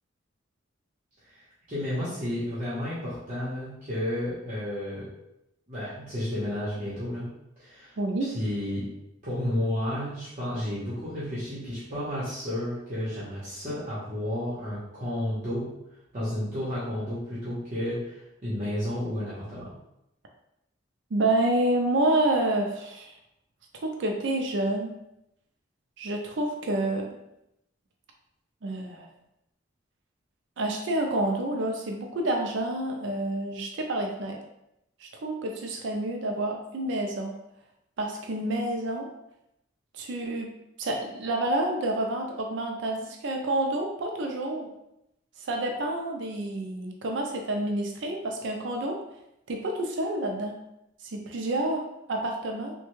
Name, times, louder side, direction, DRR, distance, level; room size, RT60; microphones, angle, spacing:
voice 1, 1.7-5.0 5.7-7.3 7.6-7.9 8.2-8.8 9.2-15.7 16.1-19.7, left 1 dB, 40° right, -10 dB, 0.9 m, -32 dB
voice 2, 8.0-8.3 21.1-23.1 23.7-24.9 26.0-27.2 28.6-29.1 30.6-34.4 35.0-37.3 38.0-39.1 39.9-40.5 40.8-44.7 45.4-49.0 49.5-50.5 51.1-52.7, right 1 dB, 65° right, 2 dB, 0.4 m, -28 dB
3.2 x 2.2 x 3.0 m, 0.84 s
head